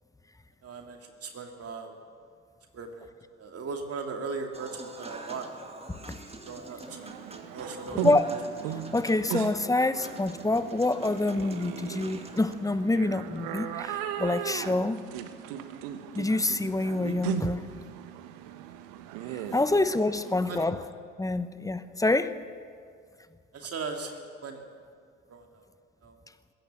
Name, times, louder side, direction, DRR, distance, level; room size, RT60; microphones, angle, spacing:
voice 1, 0.6-1.9 2.7-3.1 3.4-5.5 6.4-7.2 7.5-8.1 9.8-9.9 19.5-19.7 20.5-20.7 23.5-24.6 25.3-25.6 26.0-26.2, right 4 dB, 40° right, 3 dB, 2.5 m, -38 dB
Human voice / Acoustic guitar / Piano, 4.5-12.5, right 2 dB, 15° right, 2.5 m, -46 dB
sound 1, 6.9-20.6, right 11 dB, 65° right, 1.3 m, -37 dB
voice 2, 8.9-15.0 16.1-17.6 19.5-20.8 21.2-22.3, left 2 dB, 10° left, 12 dB, 1.1 m, -26 dB
21.0 x 16.5 x 7.6 m, 2.2 s
figure-of-eight pair, 55°, 36 cm